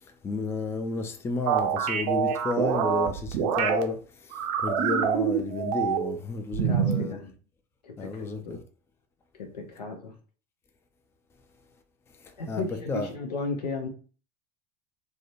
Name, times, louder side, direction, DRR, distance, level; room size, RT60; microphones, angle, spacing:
voice 1, 0.2-7.3 8.0-8.6 12.2-13.1, left 4 dB, 10° left, 0.3 m, -32 dB
sound 1, 1.5-3.8 4.3-6.2 6.5-7.1, right 8 dB, 60° right, 0.5 m, -26 dB
voice 2, 6.6-7.2 7.8-8.6 9.3-10.1 12.4-13.9, left 3 dB, 80° left, 0.6 m, -35 dB
2.6 x 2.1 x 2.5 m
figure-of-eight pair, 75°, 21 cm